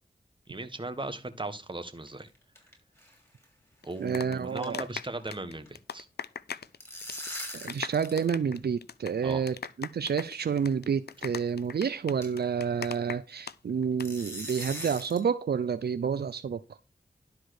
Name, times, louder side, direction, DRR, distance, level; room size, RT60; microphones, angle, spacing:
voice 1, 0.5-2.3 3.8-6.1 9.2-9.4, right 2 dB, 30° right, 1.6 m, -37 dB
sound 1, 2.0-2.7 3.0-3.2 3.4-3.5 3.9-4.1 4.4-5.2 5.5-5.7 6.5-8.3 8.5-8.6 9.5-9.6 10.5-10.7 11.1-11.2 11.6-11.7 12.2-12.5 14.0-15.3, equal, 15° left, 6.2 m, -41 dB
sound 2, 3.8-6.8 7.0-7.3 7.5-13.5 13.8-14.1, left 7 dB, 75° left, 0.5 m, -39 dB
voice 2, 4.0-4.9 7.5-16.6, right 6 dB, 75° right, 0.6 m, -29 dB
11.5 x 4.6 x 6.4 m
cardioid pair, 45°, 17 cm